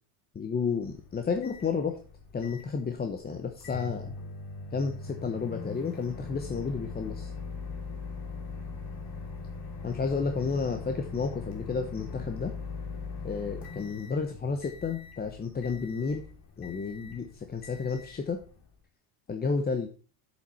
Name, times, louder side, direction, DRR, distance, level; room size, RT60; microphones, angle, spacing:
voice 1, 0.3-2.0 2.3-4.1 4.7-7.3 9.8-12.5 13.2-16.3 16.6-18.4 19.3-19.9, left 5 dB, 20° left, 5 dB, 1.0 m, -31 dB
Microwave oven, 0.8-18.8, left 4 dB, 45° left, 2.9 m, -41 dB
8.5 x 7.7 x 4.2 m, 0.37 s
supercardioid pair, 115°, 50 cm